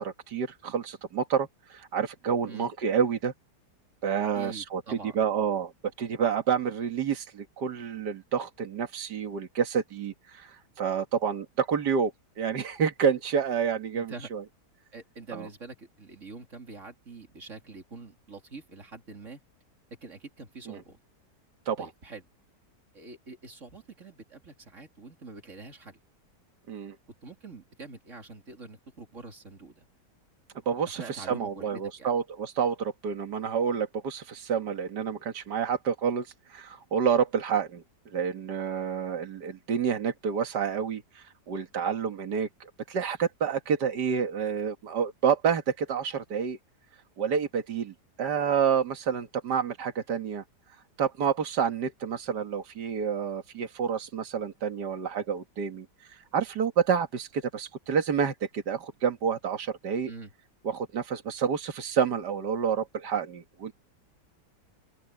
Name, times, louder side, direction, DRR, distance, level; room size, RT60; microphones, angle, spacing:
voice 1, 0.0-3.3 4.0-5.7 6.0-14.4 15.3-15.5 20.7-20.8 21.7-21.9 26.7-27.0 30.7-37.8 38.1-46.6 47.2-50.4 51.0-55.9 56.3-60.1 60.6-63.7, right 7 dB, 70° right, 2.3 m, -29 dB
voice 2, 4.4-5.3 13.9-14.3 14.9-19.4 20.0-21.0 21.8-22.2 22.9-26.0 27.2-29.9 30.9-32.1 60.1-60.3, right 4 dB, 45° right, 3.6 m, -45 dB
open air
omnidirectional pair, 1.9 m